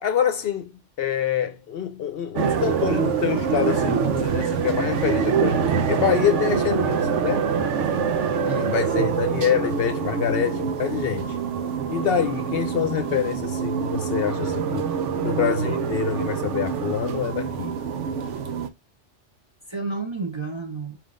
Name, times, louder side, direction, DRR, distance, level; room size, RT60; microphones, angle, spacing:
voice 1, 0.0-0.7 1.0-7.5 8.7-11.4 11.9-14.9 15.2-17.8, left 8 dB, 65° left, 0.7 m, -26 dB
sound 1, 2.4-18.7, right 6 dB, 85° right, 1.1 m, -25 dB
voice 2, 8.4-9.2 19.7-21.0, right 4 dB, 30° right, 0.7 m, -32 dB
4.6 x 3.6 x 2.5 m
omnidirectional pair, 1.2 m